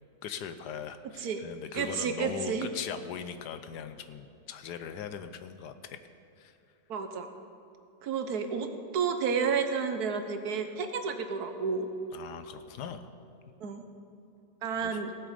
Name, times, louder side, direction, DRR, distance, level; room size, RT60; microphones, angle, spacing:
voice 1, 0.2-6.0 6.4-6.6 12.1-13.1 14.8-15.0, left 7 dB, 85° left, 10 dB, 1.3 m, -40 dB
voice 2, 1.7-2.7 6.9-7.3 8.0-8.7 8.9-11.9 13.6-13.8 14.6-15.1, right 6 dB, 70° right, 7 dB, 1.4 m, -31 dB
17.0 x 8.0 x 5.1 m, 2.8 s
omnidirectional pair, 1.8 m